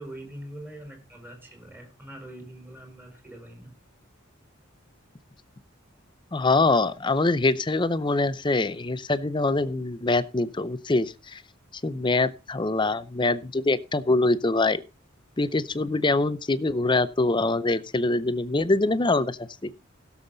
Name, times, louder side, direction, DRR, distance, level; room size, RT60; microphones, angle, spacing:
voice 1, 0.0-3.7, right 1 dB, 10° right, 3 dB, 5.1 m, -43 dB
voice 2, 6.3-11.4 11.8-14.8 15.4-19.7, left 2 dB, 25° left, 15 dB, 0.6 m, -24 dB
17.0 x 7.2 x 3.9 m, 0.31 s
head